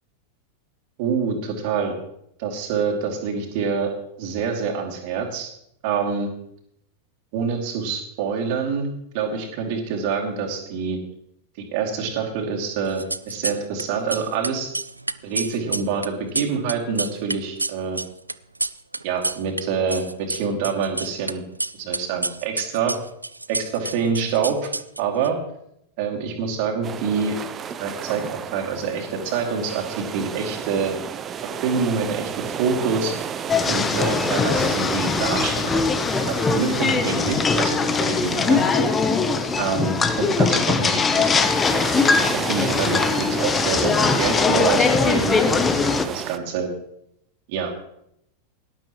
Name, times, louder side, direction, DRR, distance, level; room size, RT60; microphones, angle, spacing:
voice 1, 1.0-1.9 2.4-3.9 4.2-5.5 5.8-6.3 7.3-11.0 11.7-14.7 15.2-18.0 19.0-21.4 21.7-23.0 23.5-24.6 25.0-25.4 26.0-27.4 27.8-30.9 31.6-33.1 33.7-35.8 36.3-38.7 39.6-41.0 41.4-41.5 42.4-46.7 47.5-47.8, right 5 dB, 45° right, 1 dB, 2.7 m, -26 dB
sound 1, 12.9-13.8 14.1-19.6 19.9-21.3 21.6-25.3, right 2 dB, 85° right, 0.4 m, -29 dB
sound 2, 26.8-46.4, right 8 dB, 25° right, 0.8 m, -33 dB
sound 3, 33.5-46.1, left 4 dB, 20° left, 0.9 m, -21 dB
18.0 x 12.0 x 3.1 m, 0.76 s
figure-of-eight pair, 90°, 0 cm